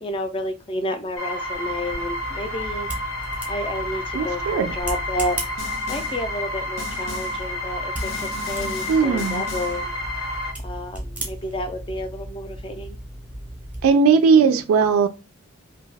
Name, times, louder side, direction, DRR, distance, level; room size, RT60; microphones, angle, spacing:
voice 1, 0.0-2.9 3.5-5.4 5.9-9.9 10.6-13.0, left 1 dB, 25° left, 0.3 m, -30 dB
sound 1, 1.2-10.5, left 1 dB, 90° left, 1.1 m, -30 dB
sound 2, 1.2-13.9, right 1 dB, 5° right, 0.6 m, -36 dB
voice 2, 4.1-4.7 8.9-9.4 13.8-15.1, right 5 dB, 85° right, 0.3 m, -18 dB
Snare drum, 5.6-6.3 6.8-7.5 8.0-9.9, left 4 dB, 70° left, 0.7 m, -37 dB
2.6 x 2.3 x 3.2 m
head